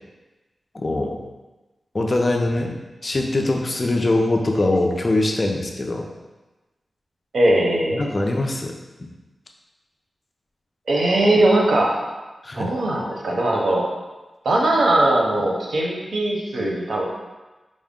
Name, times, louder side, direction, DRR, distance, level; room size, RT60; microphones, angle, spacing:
voice 1, 0.8-1.2 1.9-6.1 7.9-9.1 12.4-12.7, left 2 dB, 40° left, 2 dB, 0.5 m, -22 dB
voice 2, 7.3-8.0 10.9-12.0 12.5-13.8 14.4-17.0, right 1 dB, 80° right, -2 dB, 0.8 m, -19 dB
4.9 x 2.1 x 3.6 m, 1.1 s
wide cardioid pair, 75°, 0 cm